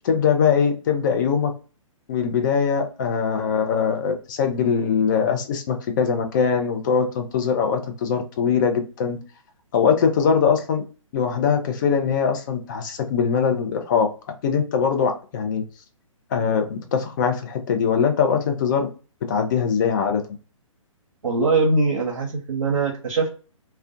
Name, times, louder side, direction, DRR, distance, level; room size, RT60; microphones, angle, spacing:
voice 1, 0.0-1.5 2.1-9.2 9.7-10.8 11.1-14.1 14.4-15.6 16.3-18.9 19.3-20.2, left 6 dB, 35° left, 4 dB, 0.5 m, -22 dB
voice 2, 21.2-23.3, right 3 dB, 70° right, -2 dB, 0.7 m, -22 dB
2.4 x 2.0 x 2.5 m, 0.35 s
figure-of-eight pair, 130°, 17 cm